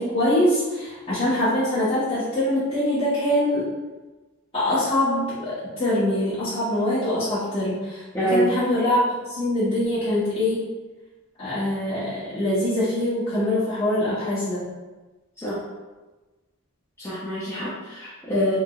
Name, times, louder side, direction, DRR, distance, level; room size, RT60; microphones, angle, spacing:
voice 1, 0.0-3.7 4.5-9.0 9.3-10.6 11.4-14.6, left 1 dB, 30° left, -13 dB, 1.2 m, -23 dB
voice 2, 8.1-8.5 15.4-15.6 17.0-18.6, equal, 15° left, -10 dB, 0.9 m, -25 dB
3.7 x 3.7 x 2.4 m, 1.2 s
head